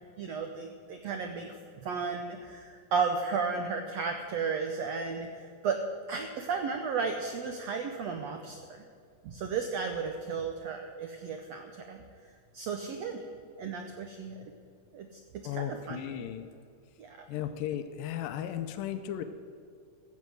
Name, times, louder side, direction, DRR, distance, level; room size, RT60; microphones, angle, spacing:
voice 1, 0.2-1.6 1.8-5.8 6.1-8.8 9.2-12.0 12.5-13.2 13.6-14.4 14.9-15.1 15.3-16.0 17.0-17.2, right 5 dB, 80° right, 5 dB, 1.5 m, -34 dB
voice 2, 15.4-16.5 17.3-19.2, left 10 dB, 90° left, 9 dB, 2.4 m, -35 dB
15.0 x 7.5 x 7.8 m, 2.2 s
omnidirectional pair, 3.9 m